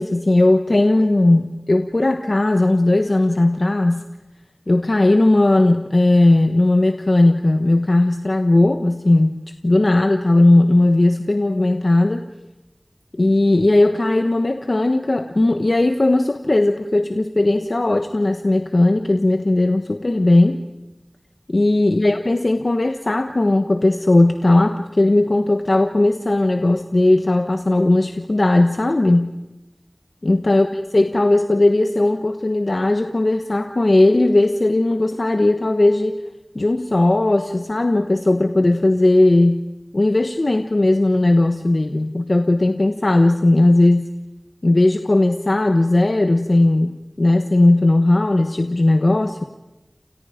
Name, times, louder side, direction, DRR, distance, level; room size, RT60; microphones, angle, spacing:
voice 1, 0.0-4.0 4.7-12.3 13.2-20.7 21.5-29.3 30.2-36.2 36.5-39.6 39.9-44.1 44.6-49.4, left 2 dB, 65° left, 6 dB, 1.3 m, -17 dB
29.5 x 29.0 x 5.2 m, 1.0 s
wide cardioid pair, 45°, 0 cm